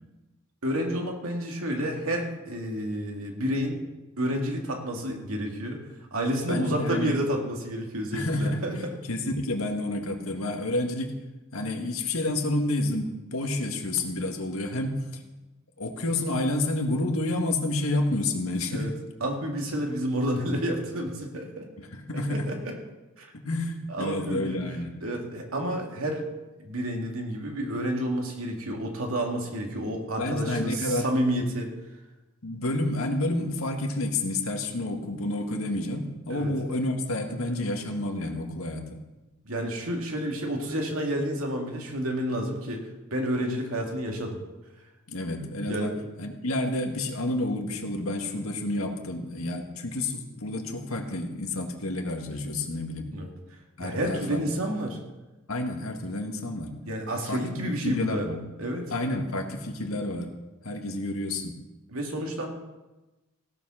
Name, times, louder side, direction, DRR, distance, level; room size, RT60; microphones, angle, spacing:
voice 1, 0.6-3.8 4.2-5.8 6.1-8.8 18.7-18.9 19.2-21.7 22.1-22.7 23.2-23.3 23.9-24.6 25.0-26.3 26.6-31.7 36.3-36.5 39.5-44.4 45.6-46.0 53.1-53.3 53.8-55.0 56.9-58.3 58.6-58.8 61.9-62.5, equal, 85° right, 1 dB, 2.4 m, -30 dB
voice 2, 6.5-7.2 8.1-11.2 11.5-15.2 15.8-18.9 21.8-22.6 23.3-25.0 30.1-31.1 32.4-39.0 45.1-45.9 46.2-53.1 53.8-54.6 55.5-56.8 57.3-58.5 58.9-60.3 60.6-61.6, left 1 dB, 90° left, 3 dB, 1.8 m, -29 dB
16.0 x 7.5 x 6.4 m, 1.1 s
head